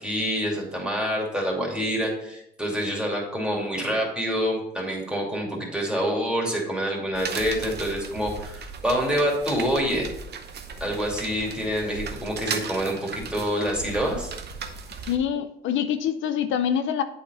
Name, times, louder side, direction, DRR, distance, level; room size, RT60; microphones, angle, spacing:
voice 1, 0.0-10.1 10.8-14.3, equal, 5° right, -2 dB, 2.4 m, -27 dB
sound 1, 7.1-15.2, right 5 dB, 55° right, 0.9 m, -36 dB
voice 2, 15.0-17.0, left 9 dB, 80° left, 10 dB, 0.5 m, -25 dB
8.2 x 4.3 x 4.2 m, 0.78 s
cardioid pair, 90°, 20 cm